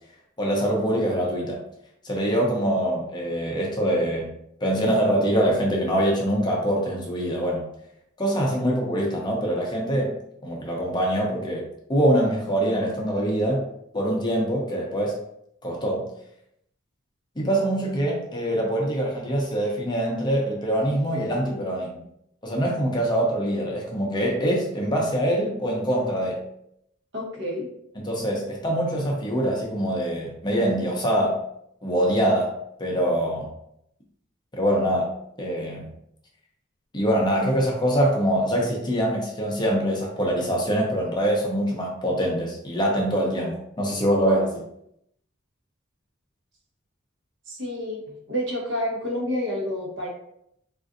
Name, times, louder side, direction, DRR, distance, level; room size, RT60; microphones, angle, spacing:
voice 1, 0.4-1.6 2.0-4.3 4.6-7.6 8.2-10.2 10.4-13.7 13.9-15.2 15.6-16.0 17.4-21.9 22.4-26.4 28.0-31.4 31.8-33.5 34.5-35.1 35.4-35.9 36.9-44.6, right 1 dB, 20° left, -1 dB, 0.6 m, -24 dB
voice 2, 27.1-27.7 47.5-48.0 48.3-50.1, left 1 dB, 60° right, -2 dB, 0.9 m, -29 dB
3.6 x 2.5 x 2.5 m, 0.75 s
head